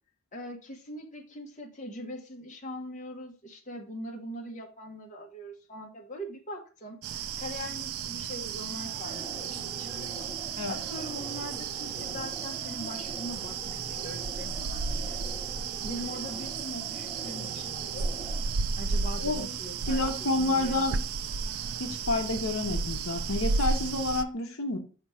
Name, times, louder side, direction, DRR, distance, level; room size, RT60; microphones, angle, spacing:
voice 1, 0.3-10.3 10.7-15.2 15.8-18.1 18.8-20.9, equal, 35° left, 1 dB, 1.1 m, -42 dB
sound 1, 7.0-24.2, right 5 dB, 80° right, 0.4 m, -33 dB
sound 2, 8.9-18.5, equal, 5° left, 0.6 m, -45 dB
voice 2, 19.2-19.5 19.9-21.0 21.8-24.8, left 2 dB, 75° left, 5 dB, 0.9 m, -29 dB
6.1 x 3.0 x 5.5 m, 0.37 s
head